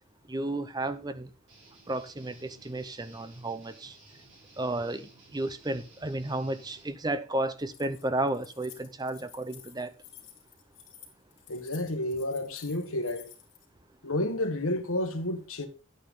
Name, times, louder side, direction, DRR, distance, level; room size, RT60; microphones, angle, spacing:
voice 1, 0.3-1.3 1.9-4.0 4.6-9.9, right 2 dB, 20° right, 0.7 m, -33 dB
Guitar, 1.5-6.9, right 2 dB, 55° right, 5.8 m, -56 dB
Keys jangling, 7.6-13.6, left 10 dB, 60° left, 3.0 m, -52 dB
voice 2, 11.5-13.3 14.0-15.7, left 1 dB, 85° left, 1.5 m, -30 dB
9.7 x 8.9 x 3.8 m
head